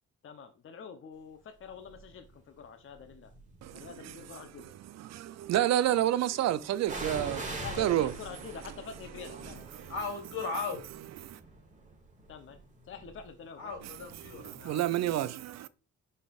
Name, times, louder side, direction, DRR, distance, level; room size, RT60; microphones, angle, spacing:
voice 1, 0.2-3.3 3.7-4.7 7.6-9.7 12.3-12.6 12.9-13.7, left 6 dB, 45° left, 0.7 m, -46 dB
sound 1, 1.9-2.2 3.0-3.9 6.8-14.5 14.7-14.8, right 2 dB, 25° right, 1.2 m, -43 dB
voice 2, 3.6-4.1 4.9-8.1 9.8-9.9 11.2-11.4 14.4-15.7, right 13 dB, 60° right, 0.4 m, -29 dB
voice 3, 9.9-10.8 13.6-14.8, left 4 dB, 80° left, 2.3 m, -37 dB
5.1 x 4.2 x 2.4 m
cardioid pair, 90°, 30 cm